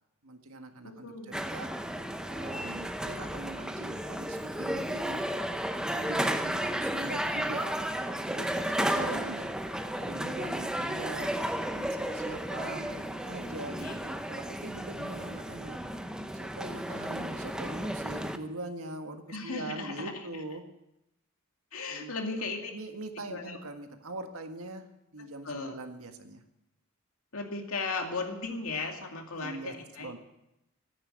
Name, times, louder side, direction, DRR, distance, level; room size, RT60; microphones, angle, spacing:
voice 1, 0.2-1.7 2.3-5.2 5.9-9.5 10.0-11.3 11.7-15.8 16.3-20.6 21.9-22.1 22.7-24.8 25.1-26.4 29.3-30.2, right 2 dB, 80° right, 5 dB, 1.6 m, -42 dB
voice 2, 0.8-1.3 8.8-9.3 13.8-14.0 19.3-20.3 21.7-22.7 23.3-23.6 25.4-25.8 27.3-30.1, left 3 dB, 75° left, 2 dB, 2.4 m, -36 dB
sound 1, 1.3-18.4, right 1 dB, 5° right, 0.7 m, -33 dB
13.5 x 10.0 x 8.8 m, 0.88 s
head